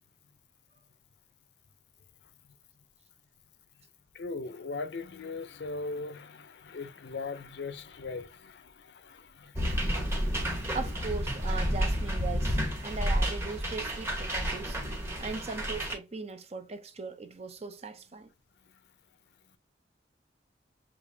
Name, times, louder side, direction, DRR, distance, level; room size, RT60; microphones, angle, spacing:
voice 1, 4.1-10.2 10.5-10.6 15.0-15.2, left 3 dB, 70° left, 0.5 m, -40 dB
sound 1, 9.6-15.9, equal, 15° right, 1.1 m, -30 dB
voice 2, 10.7-14.8 15.2-18.3, right 4 dB, 35° right, 0.6 m, -39 dB
6.8 x 2.5 x 2.7 m
head